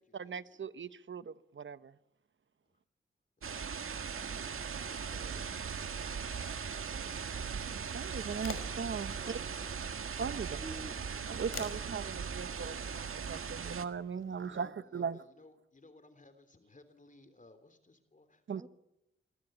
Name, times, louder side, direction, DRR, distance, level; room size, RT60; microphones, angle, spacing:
voice 1, 0.1-1.9 7.7-9.4 10.2-10.6 11.3-15.3 18.5-18.7, right 6 dB, 65° right, 14 dB, 1.1 m, -39 dB
sound 1, 3.4-13.9, right 6 dB, 80° right, 1.8 m, -39 dB
voice 2, 4.8-6.1 14.2-18.4, left 2 dB, 40° left, 11 dB, 3.3 m, -60 dB
sound 2, 8.2-14.6, left 5 dB, 80° left, 5.1 m, -51 dB
voice 3, 9.0-9.7 10.2-11.0 18.6-18.7, right 2 dB, 20° right, 9 dB, 2.0 m, -49 dB
27.5 x 22.0 x 8.9 m, 0.85 s
wide cardioid pair, 90°, 21 cm